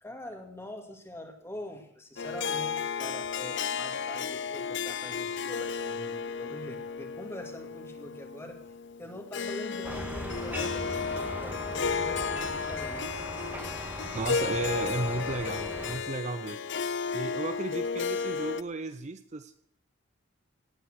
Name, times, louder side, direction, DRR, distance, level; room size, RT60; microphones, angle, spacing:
voice 1, 0.0-8.6 9.0-13.1, left 1 dB, 10° left, 4 dB, 2.2 m, -44 dB
Harp, 2.2-18.6, left 6 dB, 60° left, 0.6 m, -33 dB
Concrete demolition, 9.8-16.0, right 1 dB, 10° right, 1.6 m, -39 dB
voice 2, 14.1-16.6 17.1-19.5, right 3 dB, 35° right, 11 dB, 0.6 m, -34 dB
17.5 x 9.0 x 6.4 m, 0.65 s
head